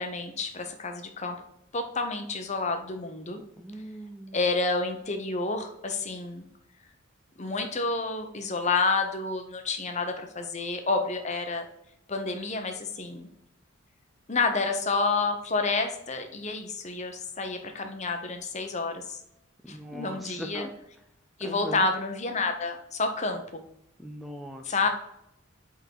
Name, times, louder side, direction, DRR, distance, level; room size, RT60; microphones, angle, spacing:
voice 1, 0.0-1.4 1.7-3.4 4.3-6.4 7.4-11.6 12.1-13.3 14.3-19.2 19.7-20.7 21.4-23.6 24.6-24.9, left 3 dB, 35° left, 6 dB, 0.9 m, -29 dB
voice 2, 3.6-4.4 19.6-20.7 21.4-21.9 24.0-24.8, equal, ahead, 4 dB, 0.4 m, -40 dB
8.0 x 3.8 x 4.7 m, 0.80 s
head